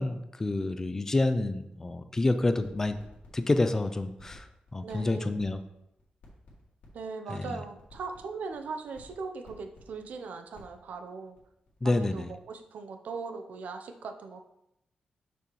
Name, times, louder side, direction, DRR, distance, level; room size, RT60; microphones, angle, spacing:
voice 1, 0.0-3.0 3.3-4.4 4.7-5.6 7.3-7.4 11.8-12.3, left 2 dB, 15° left, 9 dB, 0.4 m, -28 dB
sound 1, 2.4-11.9 12.2-12.6, left 3 dB, 60° left, 2.0 m, -55 dB
voice 2, 4.8-5.3 6.9-11.4 11.8-14.4, right 4 dB, 70° right, 7 dB, 0.6 m, -39 dB
6.6 x 6.1 x 3.0 m, 0.84 s
wide cardioid pair, 175°, 3 cm